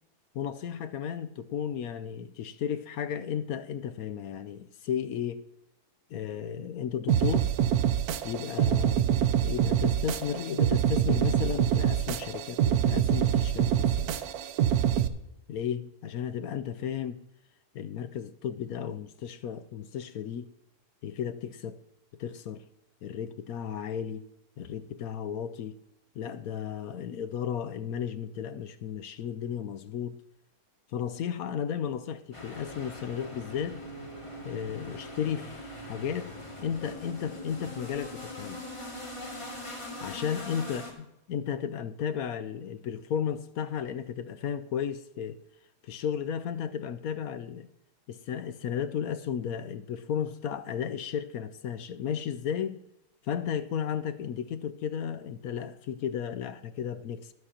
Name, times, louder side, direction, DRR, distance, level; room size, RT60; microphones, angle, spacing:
voice 1, 0.3-5.4 6.1-7.5 8.2-9.1 9.4-14.2 15.5-17.2 17.7-20.5 21.0-21.8 22.1-22.6 23.0-24.3 24.6-25.8 26.1-30.2 30.9-33.8 34.4-36.3 36.6-38.7 40.0-40.8 41.3-45.4 45.8-47.7 48.1-52.8 53.2-57.3, left 8 dB, 70° left, 1.0 m, -34 dB
sound 1, 7.1-15.1, right 10 dB, 75° right, 1.1 m, -25 dB
sound 2, 32.3-40.9, left 1 dB, 20° left, 2.1 m, -41 dB
22.5 x 7.8 x 2.8 m
omnidirectional pair, 1.7 m